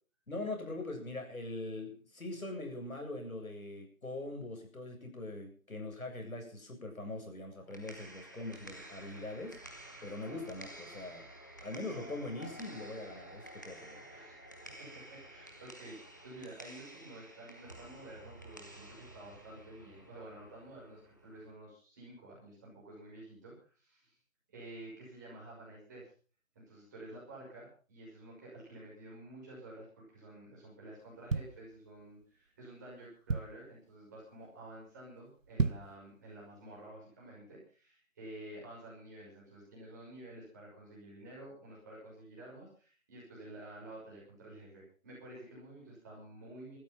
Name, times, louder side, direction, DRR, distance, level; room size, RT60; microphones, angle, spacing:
voice 1, 0.3-9.6 10.0-11.3 11.6-14.0, left 2 dB, 80° left, 4 dB, 7.9 m, -42 dB
sound 1, 7.5-21.5, right 1 dB, 15° left, 1.2 m, -51 dB
voice 2, 14.6-24.1 24.5-26.1 26.5-46.8, right 1 dB, 15° right, -5 dB, 5.9 m, -51 dB
sound 2, 31.0-32.3 32.8-32.9 33.0-33.8 34.2-34.5 34.8-34.9 35.4-36.0 36.5-36.6, right 4 dB, 65° right, 1.6 m, -34 dB
16.5 x 13.5 x 5.8 m, 0.40 s
figure-of-eight pair, 175°, 41 cm